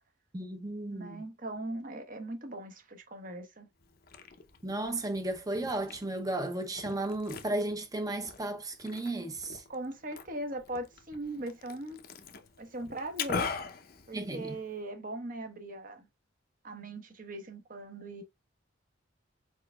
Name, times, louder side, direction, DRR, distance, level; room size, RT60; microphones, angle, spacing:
voice 1, 0.3-1.2 4.6-9.6 14.1-14.6, right 2 dB, 20° right, 0.7 m, -34 dB
voice 2, 0.9-3.7 9.7-12.0 12.6-13.5 14.1-16.1 16.6-18.2, right 1 dB, 45° right, 1.0 m, -39 dB
Liquid, 3.8-14.8, left 5 dB, 50° left, 0.6 m, -43 dB
4.7 x 4.4 x 2.3 m
head